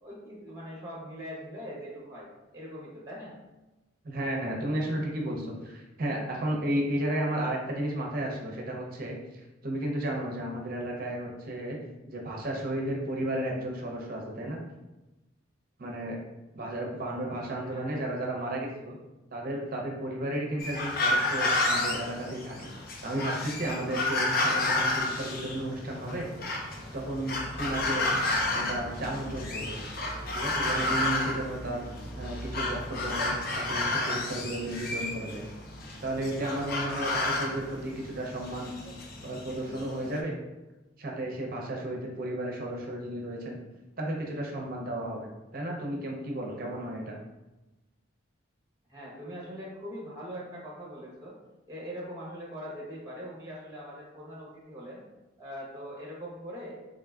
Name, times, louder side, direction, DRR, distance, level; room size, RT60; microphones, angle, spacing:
voice 1, 0.0-2.3 2.5-3.3 17.6-18.1 48.9-51.4 51.7-55.0 55.4-56.7, equal, 15° right, -4 dB, 1.0 m, -42 dB
voice 2, 4.0-11.8 12.1-14.6 15.8-16.2 16.5-19.0 19.3-22.7 23.0-26.3 26.9-28.1 28.5-29.8 30.3-31.8 32.2-35.5 36.0-38.7 39.2-40.3 41.0-43.6 44.0-47.2, right 1 dB, 45° right, -1 dB, 0.6 m, -33 dB
sound 1, 20.6-40.2, left 2 dB, 50° left, 0.6 m, -31 dB
3.7 x 3.7 x 2.3 m, 1.0 s
head